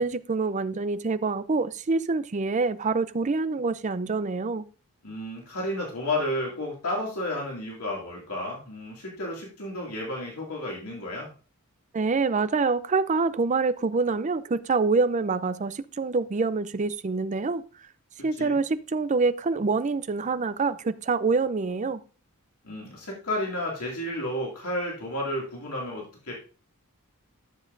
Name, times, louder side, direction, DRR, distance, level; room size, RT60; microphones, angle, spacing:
voice 1, 0.0-4.6 11.9-17.6 18.2-22.0, right 4 dB, 35° right, 0.5 m, -26 dB
voice 2, 5.0-11.3 18.4-18.6 22.6-26.3, left 1 dB, 90° left, 2.4 m, -32 dB
13.0 x 7.2 x 2.6 m
head